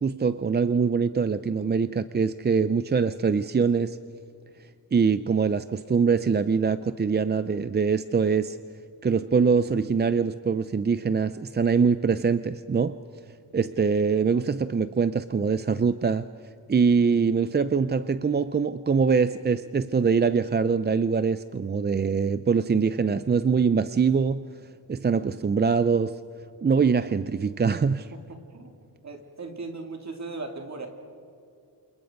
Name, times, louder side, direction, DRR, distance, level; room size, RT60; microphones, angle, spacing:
voice 1, 0.0-4.0 4.9-8.6 9.0-13.0 13.5-16.3 16.7-24.5 24.9-26.2 26.6-28.1, right 5 dB, 25° right, 0.5 m, -23 dB
voice 2, 28.1-28.7 29.0-30.9, right 3 dB, 45° right, 3.2 m, -38 dB
28.5 x 28.5 x 5.3 m
wide cardioid pair, 130°, 38 cm